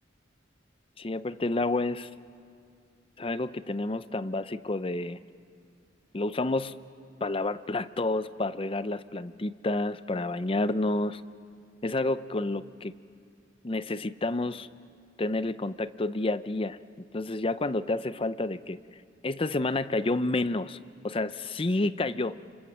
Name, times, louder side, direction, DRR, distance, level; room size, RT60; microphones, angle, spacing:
voice 1, 1.0-2.1 3.2-5.2 6.1-6.7 7.2-11.2 11.8-12.9 13.6-14.7 15.2-16.8 17.1-18.8 19.2-20.8 21.0-22.4, left 2 dB, 30° left, 14 dB, 0.6 m, -29 dB
29.0 x 26.5 x 7.4 m, 2.3 s
head